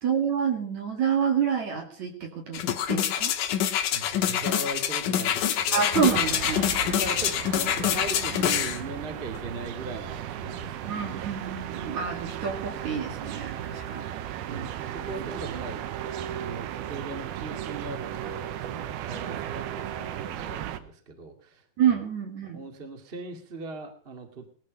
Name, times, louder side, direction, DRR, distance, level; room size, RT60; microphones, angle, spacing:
voice 1, 0.0-2.6 2.9-3.3 5.7-6.6 10.9-14.0 14.5-14.7 21.8-22.6, right 7 dB, 50° right, 3 dB, 3.2 m, -28 dB
sound 1, 2.5-8.8 9.3-9.4, left 10 dB, 70° left, 2.5 m, -26 dB
voice 2, 3.9-5.9 6.5-11.8 13.4-13.9 14.4-22.0 22.4-24.5, right 2 dB, 20° right, 3 dB, 1.9 m, -40 dB
sound 2, 6.0-20.8, right 11 dB, 80° right, 2.9 m, -36 dB
19.5 x 12.5 x 5.2 m, 0.44 s
omnidirectional pair, 4.4 m